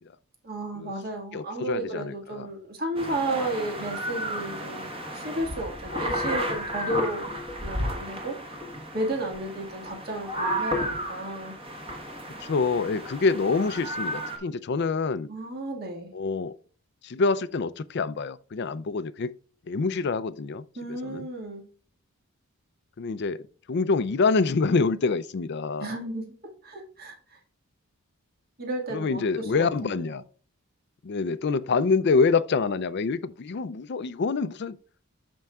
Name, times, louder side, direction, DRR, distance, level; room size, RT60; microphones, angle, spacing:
voice 1, 0.4-4.9 5.1-7.3 7.6-8.6 8.9-11.6 15.3-16.1 20.8-21.7 25.8-26.2 26.6-27.4 28.6-30.2, right 1 dB, 45° right, 1.8 m, -33 dB
voice 2, 1.3-2.5 12.4-15.3 16.1-16.6 17.0-19.3 19.7-21.3 23.0-23.4 23.7-25.9 28.9-30.2 31.0-34.8, left 4 dB, 50° left, 0.4 m, -26 dB
sound 1, 3.0-14.4, equal, 25° right, 1.3 m, -33 dB
13.0 x 4.6 x 2.3 m
head